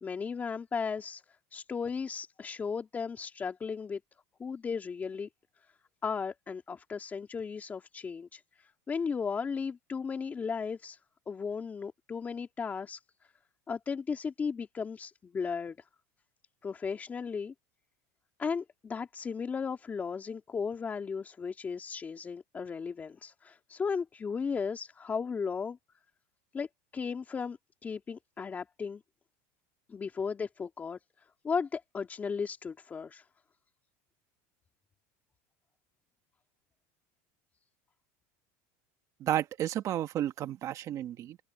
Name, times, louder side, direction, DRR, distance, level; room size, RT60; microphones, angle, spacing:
voice 1, 0.0-1.2 1.5-4.0 4.4-5.3 6.0-11.0 11.3-13.0 13.7-15.8 16.6-17.5 18.4-25.8 26.5-26.7 26.9-29.0 29.9-31.0 31.4-33.2, left 5 dB, 20° left, 2.8 m, -35 dB
voice 2, 39.2-41.4, right 12 dB, 40° right, 1.3 m, -32 dB
open air
supercardioid pair, 130°, 8 cm